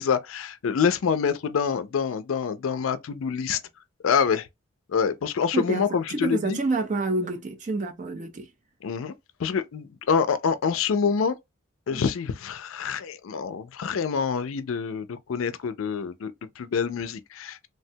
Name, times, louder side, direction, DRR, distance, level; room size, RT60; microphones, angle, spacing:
voice 1, 0.0-3.6 4.0-4.5 4.9-6.6 8.8-9.1 9.4-11.4 11.9-17.7, left 6 dB, 80° left, 0.4 m, -26 dB
voice 2, 5.5-8.5 11.9-12.0, right 3 dB, 35° right, 0.5 m, -28 dB
3.2 x 2.1 x 2.7 m
head